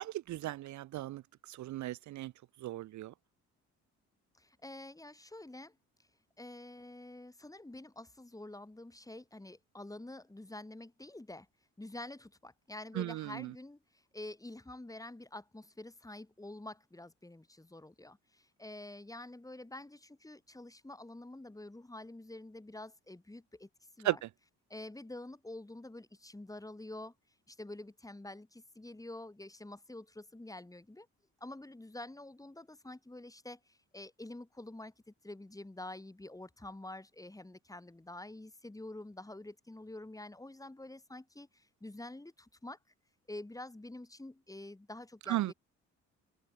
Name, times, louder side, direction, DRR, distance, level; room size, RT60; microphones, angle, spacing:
voice 1, 0.0-2.3 2.6-3.1 12.9-13.5 24.0-24.3 45.3-45.5, right 15 dB, 70° right, 0.7 m, -36 dB
voice 2, 4.3-5.7 6.4-11.5 11.8-23.7 24.0-24.2 24.7-27.1 27.5-31.1 31.4-42.8 43.3-45.5, left 2 dB, 10° left, 5.1 m, -47 dB
open air
cardioid pair, 90°, 30 cm